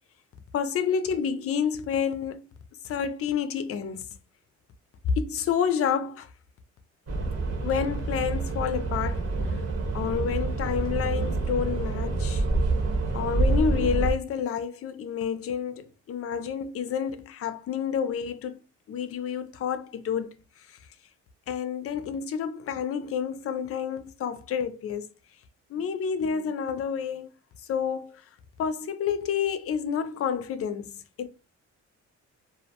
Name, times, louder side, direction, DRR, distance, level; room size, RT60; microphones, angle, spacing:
voice 1, 0.5-2.4 2.8-4.1 5.2-6.3 7.6-9.6 9.9-12.4 13.1-18.6 18.9-20.4 20.7-20.8 21.5-25.1 25.7-27.3 27.7-28.2 28.6-31.3, left 7 dB, 50° left, 0.4 m, -29 dB
sound 1, 7.1-14.1, right 3 dB, 50° right, 0.9 m, -27 dB
2.5 x 2.1 x 2.8 m
cardioid pair, 90°, 30 cm